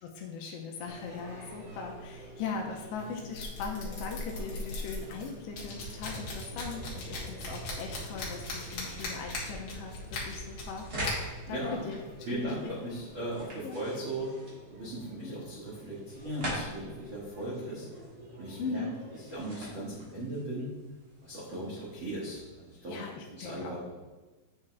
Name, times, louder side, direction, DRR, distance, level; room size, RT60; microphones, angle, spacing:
voice 1, 0.0-10.9 11.5-12.0 12.3-12.7 13.6-13.8 15.2-15.4 18.6-19.1 22.9-23.8, left 5 dB, 80° left, 0 dB, 2.8 m, -39 dB
sound 1, 0.7-19.4, equal, 55° right, 4.7 m, -50 dB
sound 2, 0.8-13.5, left 2 dB, 50° left, 1.8 m, -41 dB
sound 3, 8.3-22.8, equal, 35° right, 1.7 m, -45 dB
voice 2, 11.5-11.8 12.3-14.3 14.7-17.9 18.4-18.8 19.3-20.7 21.2-23.0 23.3-23.8, right 1 dB, 70° right, -8 dB, 1.1 m, -37 dB
8.7 x 7.1 x 3.5 m, 1.2 s
omnidirectional pair, 5.4 m